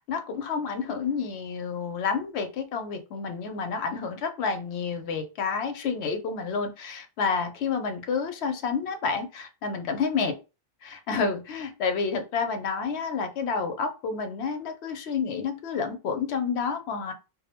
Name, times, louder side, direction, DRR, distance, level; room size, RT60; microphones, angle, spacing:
voice 1, 0.0-10.4 10.8-17.1, left 5 dB, 85° left, 7 dB, 0.8 m, -29 dB
2.5 x 2.0 x 2.8 m, 0.29 s
omnidirectional pair, 1.1 m